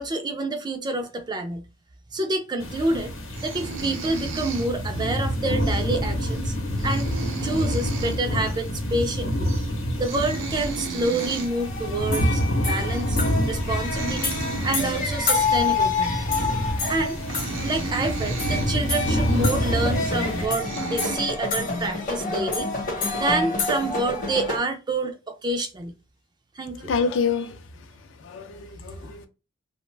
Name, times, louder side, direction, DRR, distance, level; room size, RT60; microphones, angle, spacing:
voice 1, 0.0-1.7 2.1-3.1 3.4-6.5 6.8-7.1 7.4-9.5 10.0-13.2 13.5-14.4 14.6-16.2 16.9-17.2 17.6-22.7 23.2-25.9 26.6-26.9, right 2 dB, 20° right, 0.3 m, -28 dB
sound 1, 2.6-20.5, equal, 90° left, 0.8 m, -27 dB
sound 2, 3.3-5.2 5.6-5.8 6.3-6.4 6.6-8.2 8.5-8.6 8.9-9.2 9.4-9.7 10.0-11.5 12.3-12.5 12.9-13.1 13.6-15.4 15.9-16.1 16.7-16.8 17.0-18.7 19.2-19.4 20.1-20.2 20.5-21.2, right 4 dB, 75° right, 0.5 m, -35 dB
sound 3, 11.2-24.6, left 4 dB, 40° left, 0.8 m, -28 dB
voice 2, 26.8-27.6 28.2-29.3, left 5 dB, 65° left, 0.4 m, -27 dB
2.4 x 2.1 x 3.2 m
head